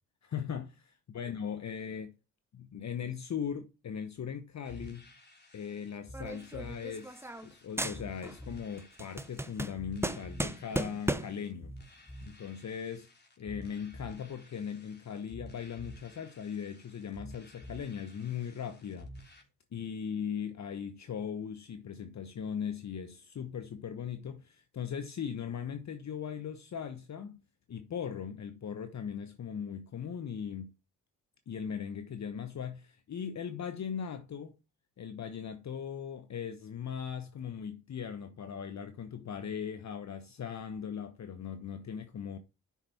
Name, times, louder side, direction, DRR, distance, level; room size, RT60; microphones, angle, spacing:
voice 1, 0.2-2.1 2.5-5.1 5.5-11.7 12.2-13.1 13.4-19.3 19.7-27.4 27.7-30.7 31.5-34.5 35.0-42.4, left 7 dB, 50° left, 1.0 m, -39 dB
sound 1, 4.6-19.4, equal, 30° left, 3.1 m, -50 dB
sound 2, 6.1-7.5 7.8-8.4 8.8-11.5, right 1 dB, 5° right, 0.9 m, -36 dB
8.3 x 5.8 x 4.2 m
supercardioid pair, 60°, 37 cm